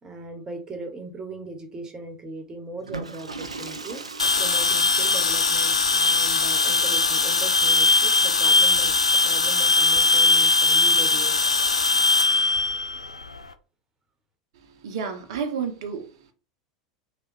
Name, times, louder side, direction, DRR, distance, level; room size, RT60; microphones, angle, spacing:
voice 1, 0.0-4.1 4.4-9.0 9.2-11.4, right 2 dB, 20° right, 1.0 m, -39 dB
Water / Toilet flush, 2.8-7.3, right 3 dB, 90° right, 0.3 m, -39 dB
sound 1, 4.2-13.4, left 3 dB, 85° left, 0.3 m, -20 dB
voice 2, 14.6-16.3, right 6 dB, 60° right, 0.7 m, -31 dB
3.2 x 2.3 x 3.2 m
figure-of-eight pair, 80°, 3 cm